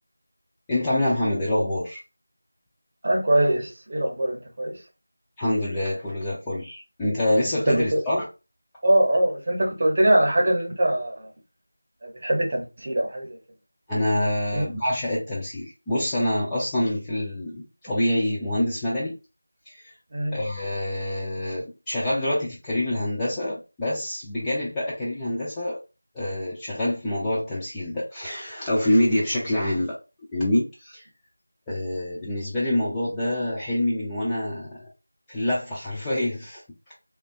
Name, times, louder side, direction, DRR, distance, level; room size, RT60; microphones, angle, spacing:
voice 1, 0.7-2.0 5.4-8.3 13.9-19.2 19.7-19.9 20.3-25.8 26.1-29.9 30.3-31.0 31.7-34.9 35.3-36.6, left 1 dB, 5° left, 0.4 m, -26 dB
voice 2, 3.0-4.7 7.7-8.0 8.8-11.3 12.0-13.4 14.5-14.6 20.1-20.4, right 1 dB, 30° right, 0.8 m, -22 dB
3.3 x 2.3 x 2.5 m
figure-of-eight pair, 170°, 0 cm